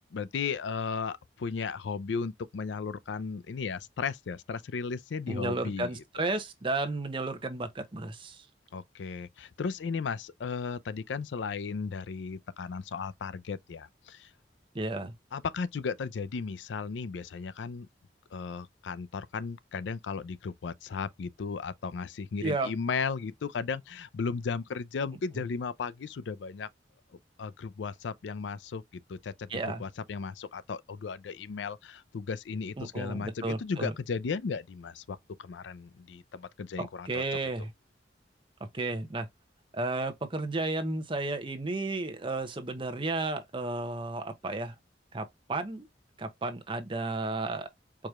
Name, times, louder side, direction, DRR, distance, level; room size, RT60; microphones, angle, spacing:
voice 1, 0.0-6.3 8.7-14.3 15.3-17.9 18.3-26.7 27.4-29.5 29.8-37.2, left 5 dB, 85° left, 0.4 m, -35 dB
voice 2, 5.3-8.4 14.7-15.1 22.4-22.7 29.5-29.8 32.8-33.9 36.8-37.7 38.7-39.3 39.7-44.7 45.1-45.9 46.2-47.7, right 2 dB, 30° right, 0.7 m, -33 dB
4.8 x 2.9 x 2.3 m
head